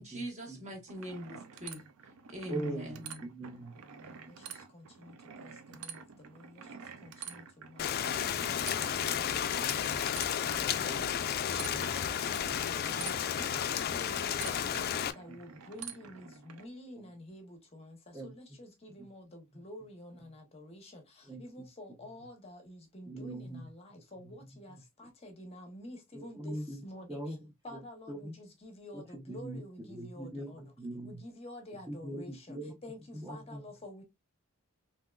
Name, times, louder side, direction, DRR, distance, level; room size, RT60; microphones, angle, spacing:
voice 1, 0.0-1.8 2.3-3.2, equal, 35° right, 1.3 m, -42 dB
sound 1, 0.9-16.7, right 7 dB, 75° right, 0.5 m, -48 dB
voice 2, 2.5-3.8 8.4-8.8 9.0-9.4 9.9-10.0 10.9-12.6 15.8-15.9 18.1-18.3 21.3-21.4 23.1-23.7 24.2-24.3 26.1-27.4 27.7-27.8 28.1-28.4 28.9-29.6 29.9-31.2 31.9-32.7 33.1-33.6, right 1 dB, 15° right, 0.6 m, -42 dB
voice 3, 3.7-8.7 12.1-27.4 27.6-30.6 31.0-34.0, left 1 dB, 30° left, 0.8 m, -50 dB
Rain, 7.8-15.1, left 9 dB, 45° left, 0.3 m, -32 dB
3.6 x 2.8 x 2.3 m
head